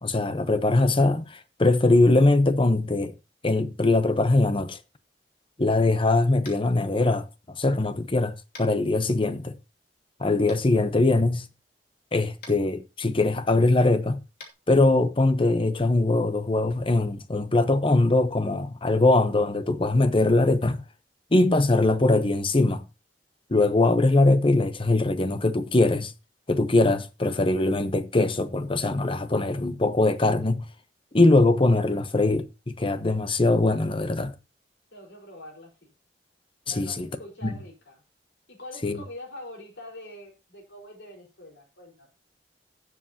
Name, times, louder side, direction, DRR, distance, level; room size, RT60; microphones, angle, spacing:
voice 1, 0.0-3.1 3.4-4.8 5.6-9.5 10.2-11.4 12.1-14.2 14.7-20.8 21.3-22.8 23.5-26.1 26.5-30.6 31.1-32.5 32.7-34.3 36.7-37.1 37.4-37.5 38.8-39.0, left 2 dB, 30° left, 0.9 m, -22 dB
Tap, 6.4-6.7 8.5-8.7 10.5-10.6 12.4-12.5 14.3-14.5, left 3 dB, 60° left, 2.7 m, -44 dB
voice 2, 34.9-35.9 36.7-38.0 38.5-42.1, left 1 dB, 80° left, 4.7 m, -44 dB
17.0 x 7.5 x 2.9 m
head